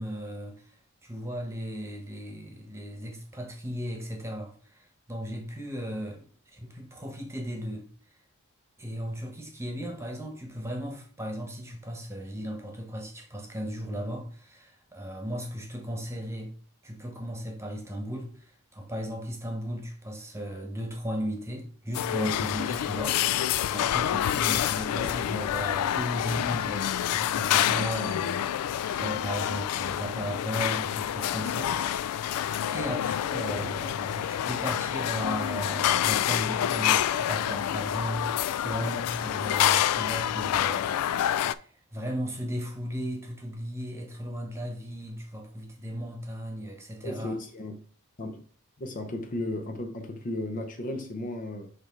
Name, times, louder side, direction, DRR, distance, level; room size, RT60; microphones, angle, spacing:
voice 1, 0.0-7.9 8.8-16.5 16.8-32.1 32.7-41.2 41.5-47.4, equal, 10° right, 1.2 m, -36 dB
sound 1, 21.9-41.5, left 11 dB, 80° left, 0.3 m, -27 dB
voice 2, 47.0-47.8 48.2-48.4 48.8-51.7, left 1 dB, 35° left, 0.7 m, -35 dB
6.8 x 3.2 x 4.6 m
head